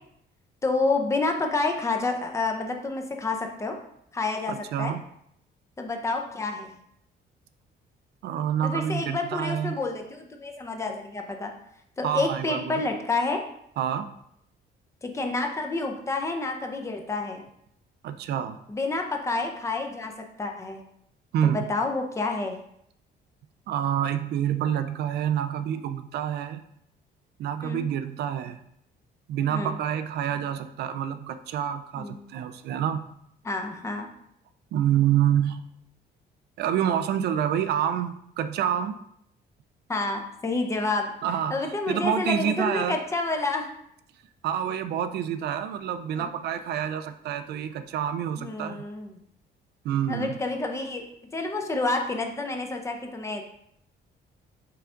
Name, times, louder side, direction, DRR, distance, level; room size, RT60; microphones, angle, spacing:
voice 1, 0.6-3.8 4.1-4.9 5.8-6.7 8.6-11.5 12.0-13.4 15.0-17.4 18.7-20.1 20.4-20.8 21.4-22.6 27.6-27.9 29.5-29.8 31.9-32.2 33.4-34.1 39.9-41.1 41.5-43.7 46.1-46.3 48.4-49.2 50.1-51.0 51.3-53.4, left 3 dB, 15° left, 3 dB, 0.6 m, -29 dB
voice 2, 4.5-5.0 8.2-9.8 12.0-12.8 13.8-14.1 18.0-18.6 21.3-21.7 23.7-26.6 27.4-28.6 29.3-33.0 34.7-35.6 36.6-39.0 41.2-41.6 41.9-43.0 44.4-48.8 49.8-50.4, right 9 dB, 65° right, 10 dB, 0.4 m, -27 dB
5.7 x 4.7 x 3.8 m, 0.72 s
cardioid pair, 175°, 19 cm